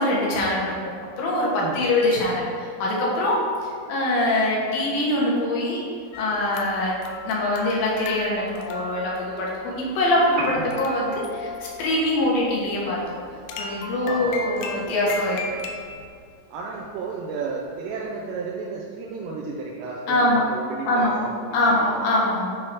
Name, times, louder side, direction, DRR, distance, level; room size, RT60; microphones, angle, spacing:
voice 1, 0.0-3.4 3.9-5.8 6.2-7.0 7.2-13.0 13.6-15.4 20.1-20.4 20.9-21.2 21.5-22.6, left 1 dB, 65° left, -4 dB, 2.9 m, -23 dB
voice 2, 1.6-1.9 10.5-10.9 14.0-15.2 16.5-22.1, right 4 dB, 85° right, -3 dB, 2.8 m, -33 dB
sound 1, 6.1-16.1, left 3 dB, 90° left, 2.8 m, -37 dB
Piano, 10.3-18.3, right 2 dB, 65° right, 2.6 m, -42 dB
8.9 x 3.7 x 4.6 m, 2.3 s
omnidirectional pair, 4.9 m